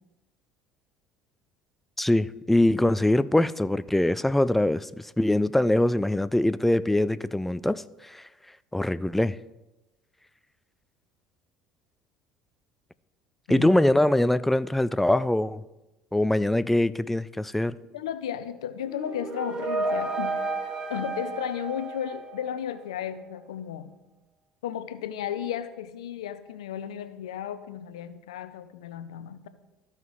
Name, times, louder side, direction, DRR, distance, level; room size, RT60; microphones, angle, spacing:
voice 1, 2.0-8.3 8.7-9.4 13.5-15.6 16.1-17.8, left 1 dB, 5° left, 0.3 m, -23 dB
voice 2, 17.9-20.4 20.9-23.9 24.6-29.5, left 10 dB, 90° left, 0.6 m, -34 dB
sound 1, 18.9-22.8, right 3 dB, 25° right, 1.1 m, -32 dB
14.0 x 5.7 x 3.1 m
hypercardioid pair, 75°, 3 cm